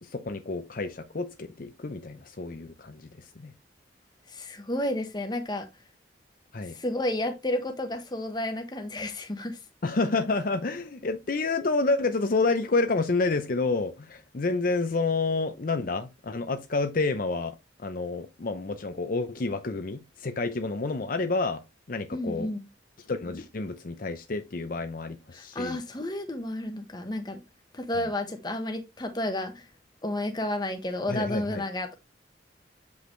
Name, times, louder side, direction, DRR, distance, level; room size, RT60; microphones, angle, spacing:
voice 1, 0.0-3.5 6.5-6.7 9.8-21.6 21.9-22.5 23.1-25.8 28.0-28.1 31.1-31.6, left 3 dB, 50° left, 0.6 m, -29 dB
voice 2, 4.3-5.7 6.7-9.6 22.1-22.7 25.3-27.4 27.7-29.6 30.0-31.9, left 1 dB, 25° left, 1.1 m, -31 dB
8.0 x 5.2 x 3.2 m
head